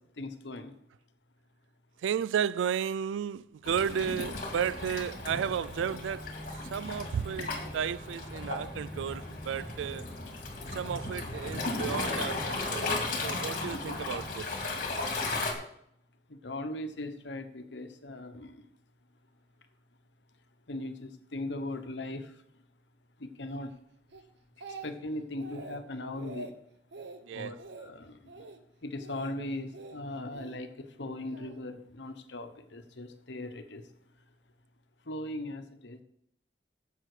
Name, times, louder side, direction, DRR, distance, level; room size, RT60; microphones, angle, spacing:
voice 1, 0.2-0.7 16.3-18.6 20.7-22.3 23.2-23.7 24.8-26.5 27.3-27.5 27.8-28.2 28.8-33.8 35.1-36.0, left 1 dB, 75° left, 1.1 m, -39 dB
voice 2, 2.0-6.3 6.7-10.1 10.7-12.9 13.2-14.6 27.3-27.5, right 8 dB, 90° right, 0.3 m, -33 dB
Waves surf, 3.6-15.5, left 2 dB, 45° left, 2.0 m, -35 dB
Speech, 24.1-25.1 25.4-25.8 26.1-26.5 26.9-27.2 27.6-27.9 28.3-28.6 29.0-29.3 29.7-30.6 31.3-31.6, right 3 dB, 70° right, 1.0 m, -45 dB
11.0 x 7.6 x 5.0 m
head